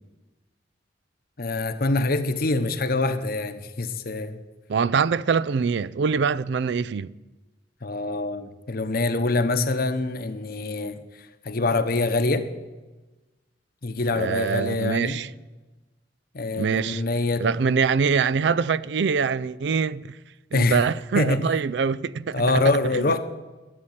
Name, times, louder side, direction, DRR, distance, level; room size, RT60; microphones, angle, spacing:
voice 1, 1.4-4.4 7.8-11.0 11.4-12.5 13.8-15.2 16.3-17.5 20.5-20.8 21.1-21.5 22.3-23.2, left 2 dB, 55° left, 1.0 m, -25 dB
voice 2, 4.7-7.1 14.2-15.3 16.6-17.0 17.4-20.2 20.5-22.6 22.9-23.2, right 5 dB, 65° right, 0.4 m, -24 dB
12.5 x 7.5 x 9.9 m
head